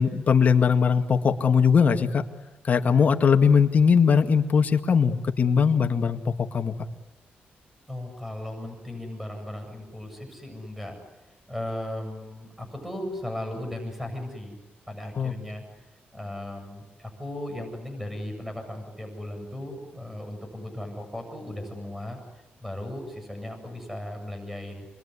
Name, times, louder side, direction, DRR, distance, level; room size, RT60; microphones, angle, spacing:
voice 1, 0.0-2.2 2.6-6.7 15.2-15.3, left 6 dB, 45° left, 6 dB, 2.1 m, -20 dB
voice 2, 7.9-11.0 11.5-14.6 14.9-15.6 16.1-22.2 22.6-24.9, left 1 dB, 5° right, 5 dB, 7.8 m, -36 dB
27.5 x 22.0 x 9.8 m, 1.0 s
cardioid pair, 130°, 4 cm